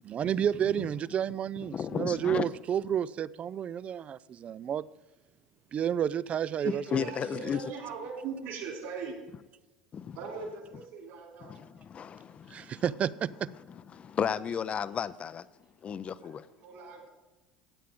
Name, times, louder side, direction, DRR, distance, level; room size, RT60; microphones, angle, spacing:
voice 1, 0.1-4.9 5.7-7.1 12.5-13.5, right 9 dB, 35° right, 0.4 m, -31 dB
voice 2, 1.7-2.5 6.6-7.6 9.9-10.2 11.4-12.8 13.9-15.5 15.8-16.5, left 7 dB, 35° left, 0.5 m, -34 dB
voice 3, 6.6-9.2 10.1-11.5 16.1-17.1, right 5 dB, 60° right, 3.5 m, -40 dB
15.5 x 8.5 x 3.7 m
hypercardioid pair, 70°, 4 cm